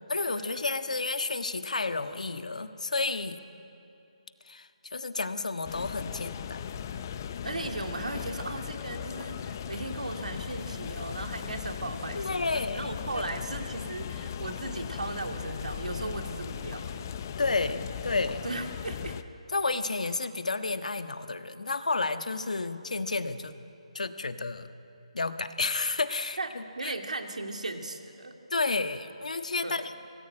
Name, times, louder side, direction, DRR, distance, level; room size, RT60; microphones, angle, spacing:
voice 1, 0.1-3.4 4.4-6.9 12.1-12.9 17.4-18.4 19.5-23.5 23.9-24.7 25.1-26.9 28.5-29.9, left 3 dB, 85° left, 9 dB, 1.5 m, -31 dB
sound 1, 5.6-19.2, left 8 dB, 30° left, 0.8 m, -38 dB
voice 2, 7.4-17.1 18.4-19.2 26.4-26.5 26.8-28.3 29.6-29.9, right 2 dB, 85° right, 4 dB, 2.5 m, -37 dB
26.0 x 19.0 x 8.8 m, 2.8 s
hypercardioid pair, 165°, 4 cm